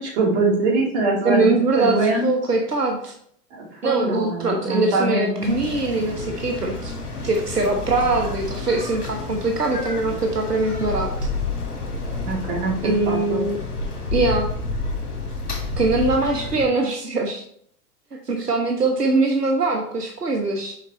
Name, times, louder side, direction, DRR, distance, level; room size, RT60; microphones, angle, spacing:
voice 1, 0.0-2.3 3.5-5.6 12.2-13.4, right 2 dB, 45° right, -3 dB, 2.7 m, -23 dB
voice 2, 1.2-3.1 3.8-6.9 7.2-11.1 12.8-13.6 14.1-14.5 15.8-17.4 18.1-20.7, right 3 dB, 85° right, 3 dB, 0.9 m, -22 dB
sound 1, 5.4-16.7, left 3 dB, 70° left, 2.1 m, -29 dB
6.5 x 5.3 x 3.2 m, 0.65 s
figure-of-eight pair, 100°, 46 cm